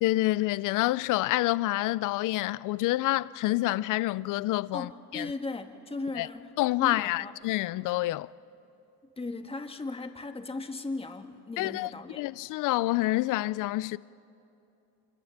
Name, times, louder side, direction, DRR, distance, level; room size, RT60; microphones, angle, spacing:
voice 1, 0.0-5.3 6.2-6.3 6.6-8.3 11.6-11.9 12.2-14.0, left 17 dB, 65° left, 0.6 m, -27 dB
voice 2, 4.7-6.5 6.8-7.4 9.2-12.3, left 3 dB, 15° left, 1.8 m, -37 dB
26.5 x 25.5 x 7.4 m
cardioid pair, 105°, 34 cm